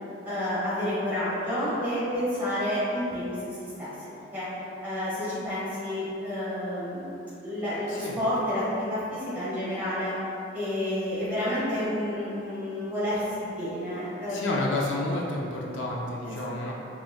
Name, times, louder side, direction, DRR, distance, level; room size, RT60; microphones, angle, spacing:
voice 1, 0.2-3.3 3.6-3.9 4.3-4.4 4.8-7.1 7.4-10.1 10.5-14.4 16.2-16.7, left 1 dB, 10° right, -12 dB, 1.5 m, -30 dB
voice 2, 14.3-16.7, left 2 dB, 75° left, -3 dB, 0.4 m, -30 dB
4.6 x 3.0 x 2.3 m, 2.9 s
head